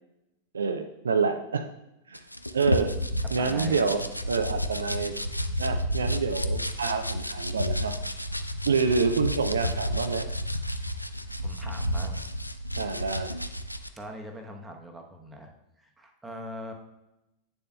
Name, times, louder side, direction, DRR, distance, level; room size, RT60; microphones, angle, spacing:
voice 1, 0.5-1.7 2.1-2.2 2.5-2.9 3.3-5.1 5.6-8.0 8.7-10.3 12.8-13.3, right 5 dB, 70° right, 7 dB, 0.4 m, -27 dB
sound 1, 2.1-13.9, equal, 90° left, 0.3 m, -31 dB
voice 2, 3.2-4.0 11.4-12.2 12.8-13.0 13.9-15.5 15.8-16.7, equal, 10° right, 2 dB, 0.9 m, -41 dB
8.9 x 6.9 x 2.2 m, 0.92 s
figure-of-eight pair, 90°, 0 cm